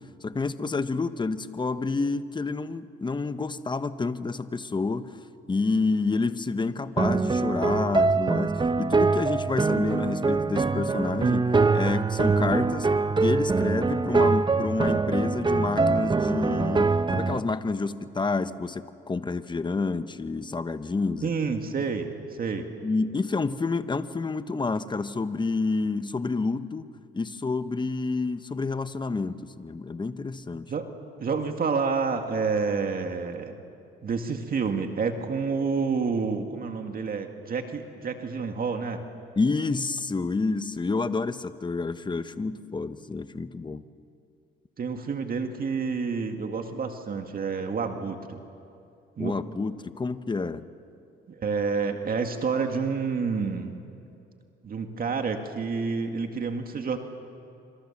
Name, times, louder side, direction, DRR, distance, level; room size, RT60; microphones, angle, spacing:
voice 1, 0.2-5.1 5.5-12.9 13.2-21.3 22.8-26.9 27.1-30.7 39.4-43.8 49.2-50.7, left 3 dB, 25° left, 11 dB, 1.1 m, -29 dB
sound 1, 7.0-17.4, right 4 dB, 25° right, 0.8 m, -24 dB
voice 2, 21.2-22.7 30.7-30.8 31.2-33.6 34.0-39.0 44.8-48.4 49.2-49.3 51.3-53.8 54.6-57.0, right 5 dB, 50° right, 5 dB, 2.1 m, -29 dB
27.0 x 25.5 x 7.4 m, 2.6 s
cardioid pair, 90°, 20 cm